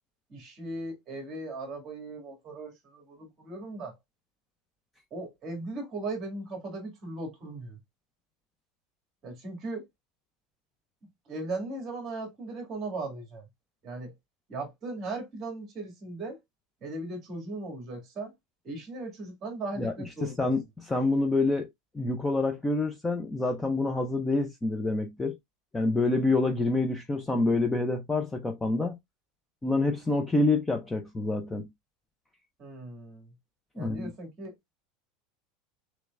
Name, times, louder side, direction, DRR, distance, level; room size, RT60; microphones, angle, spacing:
voice 1, 0.3-3.9 5.1-7.8 9.2-9.8 11.3-13.4 13.8-14.1 14.5-16.4 16.8-18.3 18.6-20.5 32.6-33.3 33.8-34.5, right 2 dB, 25° right, 2.1 m, -38 dB
voice 2, 19.8-21.7 21.9-25.3 25.7-29.0 29.6-31.7 33.8-34.1, left 2 dB, 10° left, 0.5 m, -27 dB
6.4 x 3.1 x 2.4 m
supercardioid pair, 170°, 0 cm